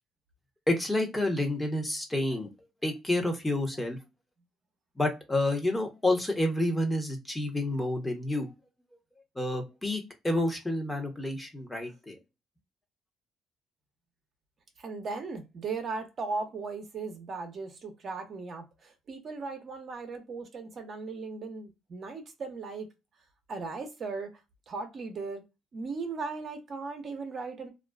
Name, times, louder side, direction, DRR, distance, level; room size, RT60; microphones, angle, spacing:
voice 1, 0.7-2.5 2.8-4.0 5.0-8.5 9.4-12.2, left 1 dB, 15° left, 0.8 m, -29 dB
voice 2, 14.8-22.9 23.5-24.3 24.7-25.4 25.7-27.7, right 4 dB, 50° right, 0.7 m, -37 dB
2.4 x 2.2 x 2.3 m
supercardioid pair, 75°, 0 cm